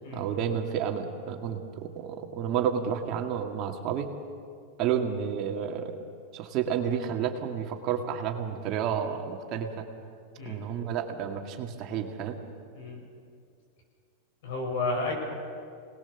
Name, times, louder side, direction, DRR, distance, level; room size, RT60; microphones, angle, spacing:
voice 1, 0.1-4.1 4.8-6.0 6.3-9.9 10.5-12.4, right 8 dB, 40° right, 4 dB, 2.0 m, -30 dB
voice 2, 14.4-15.1, left 3 dB, 70° left, 1 dB, 7.3 m, -31 dB
25.5 x 19.5 x 7.1 m, 2.3 s
supercardioid pair, 145°, 0 cm